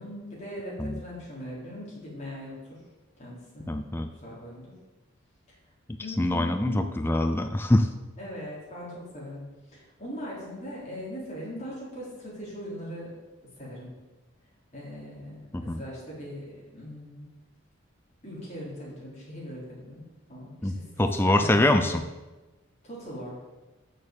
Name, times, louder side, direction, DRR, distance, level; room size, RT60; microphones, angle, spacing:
voice 1, 0.0-2.8 3.2-3.8 4.1-4.7 5.5-5.6 6.0-6.8 8.2-13.1 13.6-14.0 14.7-16.5 16.7-17.3 18.2-22.0 22.8-23.4, equal, 30° left, -6 dB, 3.6 m, -40 dB
voice 2, 3.7-4.1 6.2-7.9 15.5-15.8 20.6-20.7 21.0-22.0, left 1 dB, 10° left, 6 dB, 0.4 m, -24 dB
6.6 x 6.5 x 7.2 m, 1.1 s
head